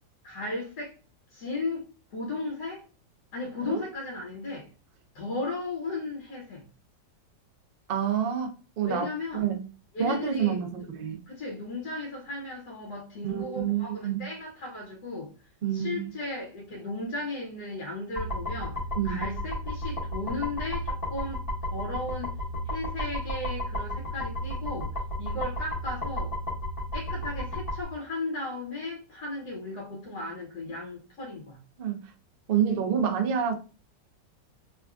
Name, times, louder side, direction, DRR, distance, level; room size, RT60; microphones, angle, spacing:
voice 1, 0.2-0.9 1.3-2.8 3.3-4.7 5.1-6.6 8.8-9.5 9.9-10.9 11.3-15.3 15.7-18.8 19.0-21.4 21.7-22.4 22.7-24.9 25.2-26.3 26.9-31.6, left 2 dB, 65° left, 1.4 m, -35 dB
voice 2, 7.9-9.0 9.3-9.6 10.0-11.2 13.2-14.2 15.6-16.1 19.0-19.2 31.8-32.0 32.5-33.5, right 8 dB, 75° right, 0.5 m, -28 dB
sound 1, 18.2-27.8, left 1 dB, 20° left, 1.7 m, -33 dB
3.6 x 3.4 x 2.3 m
omnidirectional pair, 1.9 m